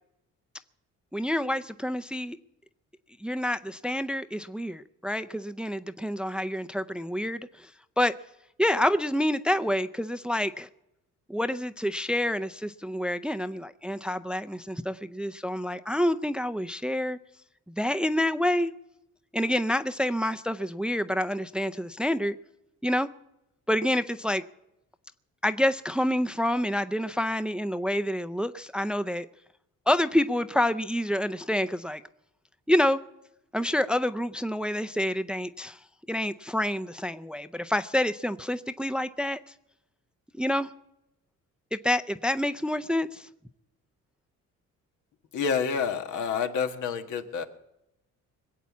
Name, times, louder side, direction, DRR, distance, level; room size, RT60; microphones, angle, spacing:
voice 1, 1.1-2.4 3.2-7.7 8.0-8.2 8.6-10.7 11.3-17.2 17.8-18.7 19.3-22.4 22.8-23.1 23.7-24.4 25.4-29.3 29.9-32.0 32.7-33.0 33.5-35.8 36.1-39.4 40.3-40.7 41.7-43.3, left 1 dB, 5° right, 0.5 m, -28 dB
voice 2, 45.3-47.4, left 6 dB, 80° left, 1.6 m, -28 dB
21.5 x 8.4 x 7.3 m
cardioid pair, 90°, 30 cm